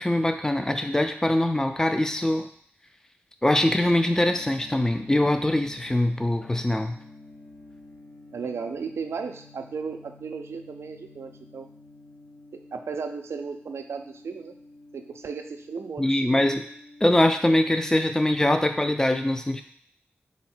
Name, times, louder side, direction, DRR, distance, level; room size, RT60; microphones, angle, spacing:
voice 1, 0.0-2.5 3.4-7.0 16.0-16.6 17.0-19.6, left 1 dB, 15° left, 7 dB, 0.4 m, -23 dB
sound 1, 3.6-18.3, left 2 dB, 55° left, 0.9 m, -49 dB
voice 2, 8.3-11.7 12.5-14.5 14.9-16.5, right 5 dB, 90° right, 6 dB, 0.3 m, -35 dB
3.9 x 2.1 x 4.3 m, 0.62 s
wide cardioid pair, 75°, 4 cm